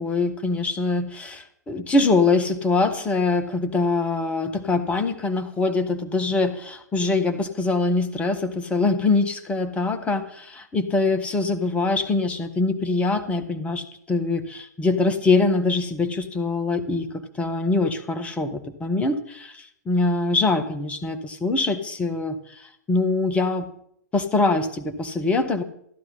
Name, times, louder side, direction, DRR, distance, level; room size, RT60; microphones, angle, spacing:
voice 1, 0.0-17.1 17.4-23.7 24.1-25.6, left 3 dB, 15° left, 8 dB, 1.5 m, -23 dB
14.5 x 11.0 x 5.7 m, 0.69 s
figure-of-eight pair, 105°, 9 cm